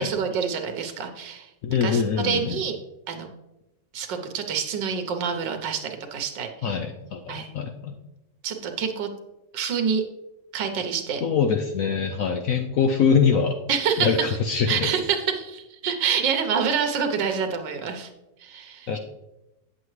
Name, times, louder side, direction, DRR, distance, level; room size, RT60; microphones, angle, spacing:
voice 1, 0.0-1.5 1.8-2.8 3.1-3.3 3.9-6.8 7.3-7.5 8.4-9.1 9.5-10.0 10.5-11.2 13.7-14.4 14.7-18.1 18.4-18.9, right 6 dB, 90° right, 6 dB, 1.5 m, -27 dB
voice 2, 1.6-2.6 6.6-7.9 11.2-13.6 14.0-14.9 18.9-19.0, left 6 dB, 70° left, 5 dB, 0.8 m, -23 dB
8.4 x 7.6 x 3.1 m, 0.96 s
omnidirectional pair, 1.9 m